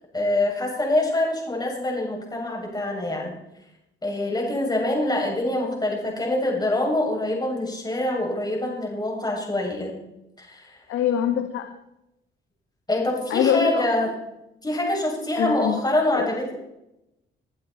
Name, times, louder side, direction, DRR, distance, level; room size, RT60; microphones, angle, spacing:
voice 1, 0.1-3.3 4.0-9.9 10.4-10.8 12.9-14.1 14.6-16.5, left 1 dB, 20° left, -1 dB, 7.5 m, -25 dB
voice 2, 10.9-11.7 13.3-13.8 15.4-15.8 16.2-16.3, left 9 dB, 85° left, 6 dB, 1.5 m, -23 dB
22.5 x 11.5 x 4.5 m, 0.89 s
cardioid pair, 90°, 20 cm